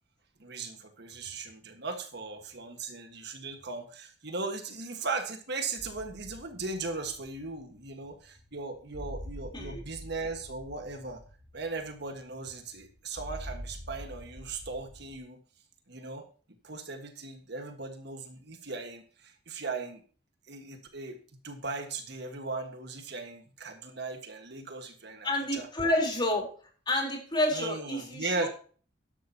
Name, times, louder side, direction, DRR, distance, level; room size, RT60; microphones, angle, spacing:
voice 1, 0.4-11.2 11.5-15.4 15.9-16.2 16.6-20.0 20.5-25.7 27.5-28.5, right 3 dB, 60° right, 6 dB, 1.6 m, -38 dB
sound 1, 5.8-15.2, equal, 30° right, 4.1 m, -46 dB
voice 2, 25.2-26.5 26.9-28.5, left 1 dB, 25° left, 0 dB, 4.0 m, -29 dB
12.5 x 11.5 x 2.9 m, 0.41 s
head